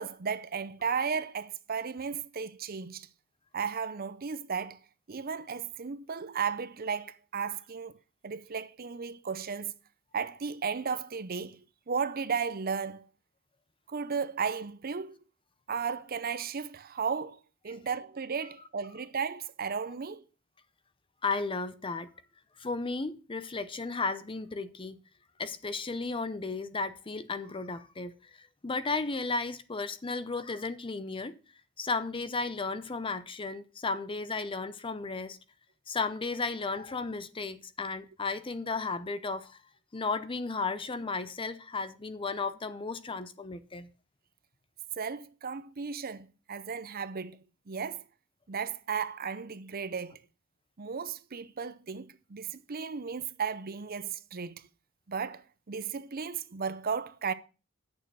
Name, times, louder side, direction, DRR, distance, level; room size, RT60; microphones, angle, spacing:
voice 1, 0.0-3.1 3.5-4.8 5.1-8.0 8.2-9.7 10.1-13.1 13.9-15.2 15.7-20.2 45.0-48.0 48.5-50.2 50.8-54.7 55.1-57.3, right 6 dB, 45° right, 0.6 m, -35 dB
voice 2, 21.2-22.1 22.6-25.0 25.4-28.1 28.4-31.3 31.8-35.4 35.9-39.6 39.9-43.9, left 4 dB, 25° left, 0.6 m, -34 dB
8.8 x 6.9 x 6.2 m
head